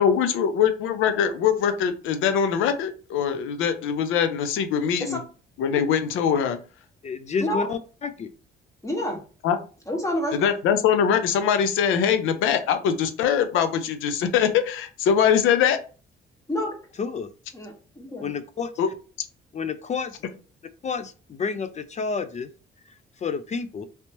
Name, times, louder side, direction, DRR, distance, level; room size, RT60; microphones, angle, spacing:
voice 1, 0.0-5.2 5.6-6.6 9.4-9.6 10.3-15.8 18.8-18.9, left 8 dB, 85° left, 9 dB, 0.5 m, -22 dB
voice 2, 7.0-8.3 17.0-17.3 18.2-18.7 19.5-20.1 20.8-22.5 23.2-23.9, left 5 dB, 35° left, 11 dB, 0.4 m, -29 dB
voice 3, 8.8-9.2 9.9-10.5 16.5-16.7 17.5-18.3, left 1 dB, 15° left, 1 dB, 1.3 m, -28 dB
3.3 x 2.8 x 2.9 m, 0.36 s
cardioid pair, 90°, 20 cm